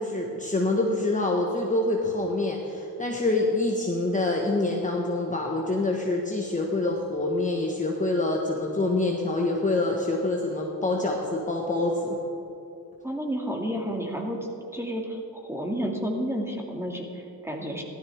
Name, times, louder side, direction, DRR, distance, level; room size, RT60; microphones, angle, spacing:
voice 1, 0.0-12.2, left 2 dB, 15° left, -1 dB, 1.4 m, -26 dB
voice 2, 13.0-14.4 14.7-17.8, equal, 5° right, 1 dB, 2.1 m, -31 dB
15.5 x 13.0 x 3.5 m, 2.6 s
supercardioid pair, 70°, 44 cm